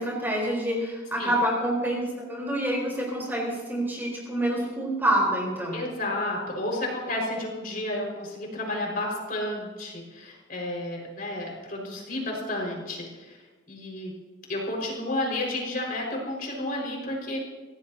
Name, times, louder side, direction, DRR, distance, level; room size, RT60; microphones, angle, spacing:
voice 1, 0.0-5.8, right 1 dB, 10° right, -3 dB, 4.1 m, -27 dB
voice 2, 5.7-13.4 13.7-14.1 14.5-17.4, left 1 dB, 45° left, -2 dB, 5.3 m, -31 dB
26.5 x 16.5 x 2.9 m, 1.2 s
head